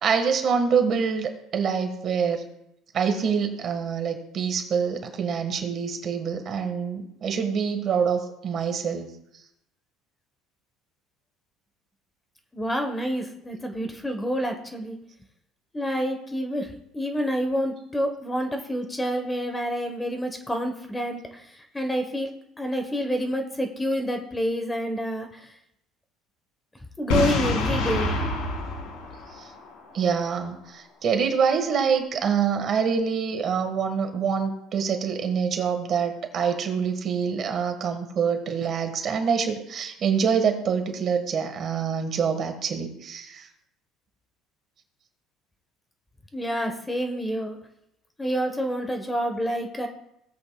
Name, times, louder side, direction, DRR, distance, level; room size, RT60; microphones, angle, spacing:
voice 1, 0.0-2.4 2.9-9.1 29.9-43.4, right 6 dB, 40° right, 6 dB, 1.4 m, -25 dB
voice 2, 12.5-15.0 15.7-16.7 16.9-21.2 21.7-25.4 27.0-28.2 46.3-47.6 48.2-49.9, equal, 10° left, 5 dB, 1.0 m, -28 dB
Boom, 27.1-30.0, left 2 dB, 85° left, 3.8 m, -26 dB
17.0 x 8.0 x 2.3 m, 0.80 s
cardioid pair, 140°, 0 cm